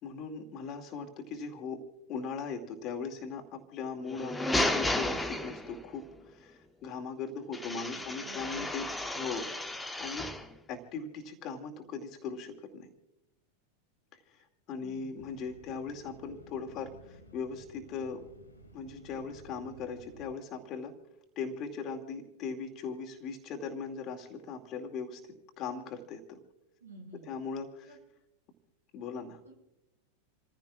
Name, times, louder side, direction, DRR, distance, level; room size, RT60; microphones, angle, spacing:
voice 1, 0.0-1.8 2.1-8.9 9.1-9.5 10.0-10.3 10.7-12.9 14.3-14.4 14.7-18.2 18.7-20.9 21.4-25.2 25.6-26.4 27.1-27.9 28.9-29.4, left 5 dB, 35° left, 3 dB, 2.4 m, -39 dB
sound 1, 4.0-6.0 7.5-10.5, left 1 dB, 5° left, 1.0 m, -33 dB
voice 2, 7.9-9.0 14.8-15.3 26.8-27.3 27.8-28.0 29.4-29.5, right 2 dB, 75° right, 0 dB, 5.5 m, -51 dB
sound 2, 15.1-20.3, equal, 75° left, 2.0 m, -55 dB
29.0 x 15.5 x 2.4 m, 0.91 s
figure-of-eight pair, 90°, 0 cm